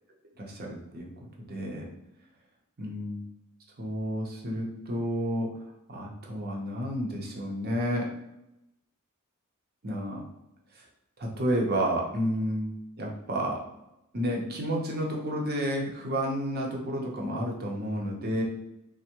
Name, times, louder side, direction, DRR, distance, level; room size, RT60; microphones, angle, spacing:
voice 1, 0.4-1.1 1.5-1.9 2.8-3.2 3.8-5.5 5.9-8.1 9.8-10.2 10.7-10.8 11.2-12.7 13.0-13.6 14.1-18.4, equal, 45° right, 0 dB, 0.7 m, -30 dB
3.4 x 2.1 x 2.8 m, 0.88 s
head